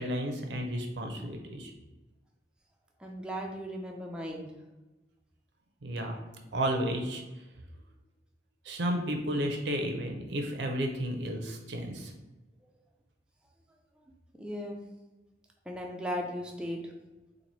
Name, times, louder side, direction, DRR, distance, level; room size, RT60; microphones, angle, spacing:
voice 1, 0.0-1.7 5.8-6.2 6.5-7.2 8.6-12.1, equal, 70° right, 4 dB, 0.6 m, -32 dB
voice 2, 3.0-4.5 14.3-14.8 15.7-16.8, equal, 5° right, 0 dB, 0.3 m, -36 dB
2.9 x 2.5 x 4.0 m, 1.1 s
head